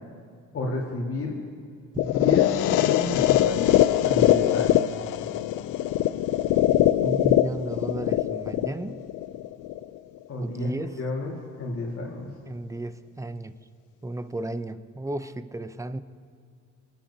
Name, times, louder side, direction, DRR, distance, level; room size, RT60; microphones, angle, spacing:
voice 1, 0.5-1.4 1.9-3.7 4.0-4.8 10.3-12.3, left 2 dB, 50° left, -3 dB, 1.8 m, -31 dB
sound 1, 2.0-10.0, left 13 dB, 85° left, 0.4 m, -22 dB
voice 2, 7.0-9.0 10.4-11.0 12.5-13.6 14.0-16.0, right 1 dB, 10° right, 12 dB, 0.5 m, -33 dB
27.5 x 10.5 x 2.8 m, 2.3 s
cardioid pair, 90°, 30 cm